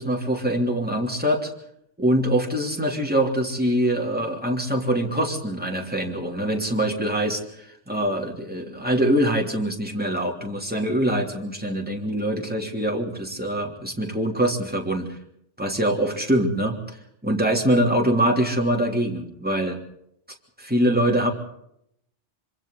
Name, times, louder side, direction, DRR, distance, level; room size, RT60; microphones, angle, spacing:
voice 1, 0.0-1.5 2.0-15.1 15.6-19.8 20.6-21.3, right 1 dB, 10° right, 1 dB, 3.2 m, -24 dB
26.0 x 25.5 x 4.0 m, 0.74 s
omnidirectional pair, 1.2 m